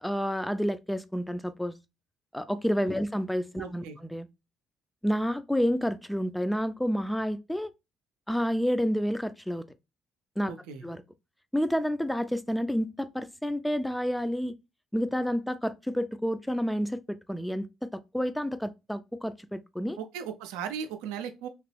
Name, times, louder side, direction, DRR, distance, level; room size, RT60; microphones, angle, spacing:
voice 1, 0.0-1.7 2.3-4.3 5.0-7.7 8.3-9.7 10.4-10.5 10.8-11.0 11.5-14.6 14.9-20.0, equal, 5° left, 0.4 m, -29 dB
voice 2, 3.5-4.0 10.4-10.8 20.0-21.5, right 7 dB, 85° right, 0.5 m, -37 dB
3.0 x 2.9 x 3.2 m
supercardioid pair, 65°, 0 cm